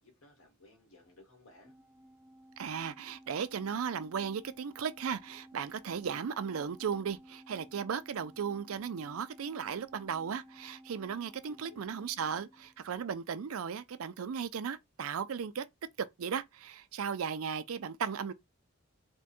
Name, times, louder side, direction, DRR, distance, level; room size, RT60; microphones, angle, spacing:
voice 1, 0.0-1.8 11.4-11.9, left 2 dB, 80° left, 1.6 m, -59 dB
Organ, 1.6-12.9, right 1 dB, 5° right, 0.4 m, -56 dB
voice 2, 2.6-15.6 16.2-18.3, right 7 dB, 85° right, 0.5 m, -36 dB
3.5 x 2.2 x 4.3 m
head